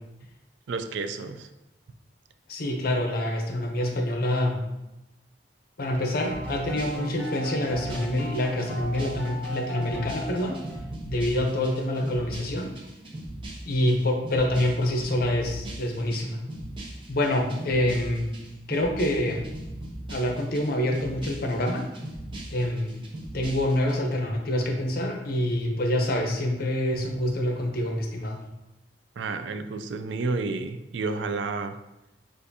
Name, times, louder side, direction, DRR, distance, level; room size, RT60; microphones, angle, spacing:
voice 1, 0.7-1.5 29.2-31.8, right 3 dB, 85° right, 9 dB, 0.4 m, -31 dB
voice 2, 2.5-4.6 5.8-10.6 11.0-12.7 13.7-16.4 17.1-18.3 18.7-19.4 20.1-21.8 22.5-23.1 23.3-28.4, left 1 dB, 55° left, 3 dB, 0.7 m, -26 dB
sound 1, 5.9-11.1, right 1 dB, 5° left, 1.1 m, -37 dB
sound 2, 6.2-24.0, right 1 dB, 30° right, 0.7 m, -40 dB
6.6 x 2.5 x 2.7 m, 0.94 s
head